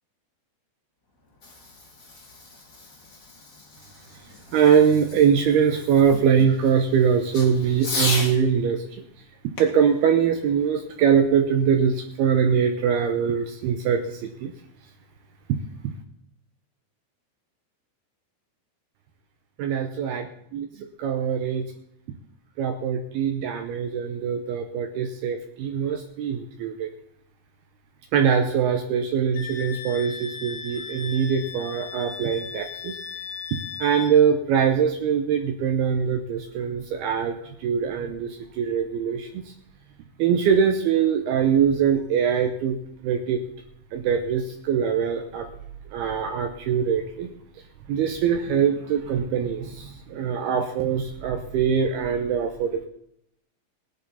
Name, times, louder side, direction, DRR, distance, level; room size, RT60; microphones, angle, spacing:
Fireworks, 1.1-8.4 9.5-11.2, left 3 dB, 45° left, 1.0 m, -36 dB
voice 1, 4.5-8.8 9.6-14.5 15.5-15.6 19.6-20.3 20.5-21.7 22.6-26.9 28.1-33.0 33.5-39.4 40.2-42.8 43.0-43.4 43.9-45.5 45.9-47.3 47.9-52.9, right 7 dB, 80° right, 5 dB, 2.3 m, -23 dB
Wind instrument woodwind instrument, 29.3-34.1, left 7 dB, 70° left, 1.4 m, -37 dB
19.0 x 10.5 x 4.1 m, 0.75 s
omnidirectional pair, 5.5 m